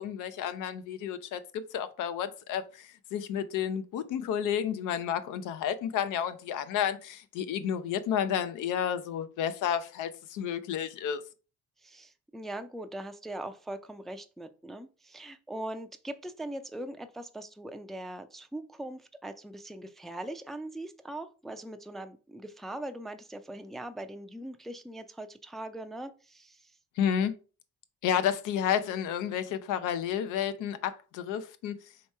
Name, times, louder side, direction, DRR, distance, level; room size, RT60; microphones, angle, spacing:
voice 1, 0.0-11.2 27.0-27.4 28.0-31.8, left 9 dB, 90° left, 0.6 m, -31 dB
voice 2, 11.8-26.7, right 1 dB, ahead, 0.3 m, -41 dB
3.2 x 3.0 x 4.5 m
cardioid pair, 90°, 30 cm